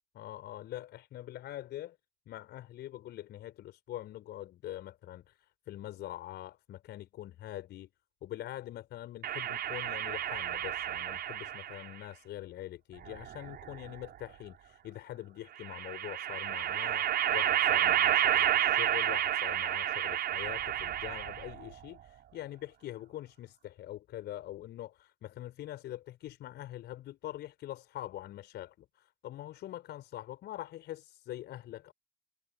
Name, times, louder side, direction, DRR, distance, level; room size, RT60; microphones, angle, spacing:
voice 1, 0.1-2.0 2.3-7.9 8.2-31.9, left 13 dB, 55° left, 5.0 m, -44 dB
sound 1, 9.2-11.9 13.0-14.0 15.6-21.6, right 11 dB, 50° right, 4.0 m, -30 dB
figure-of-eight pair, 50°, 21 cm